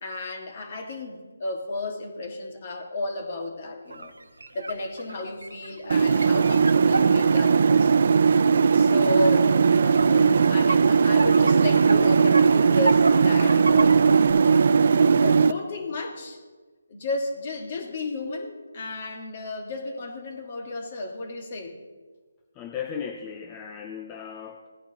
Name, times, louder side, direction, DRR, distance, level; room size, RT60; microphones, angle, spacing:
voice 1, 0.0-4.1 4.5-8.0 8.7-14.0 14.4-14.6 15.2-16.4 16.9-21.8 23.0-23.1, left 2 dB, 40° left, 3 dB, 1.9 m, -32 dB
sound 1, 3.9-8.2 9.2-9.3 9.6-14.3, right 3 dB, 80° right, 0.8 m, -32 dB
sound 2, 5.9-15.5, right 5 dB, 50° right, 0.4 m, -19 dB
voice 2, 22.6-24.7, left 7 dB, 15° left, 4 dB, 0.5 m, -36 dB
17.0 x 9.7 x 3.0 m, 1.4 s
figure-of-eight pair, 160°, 0 cm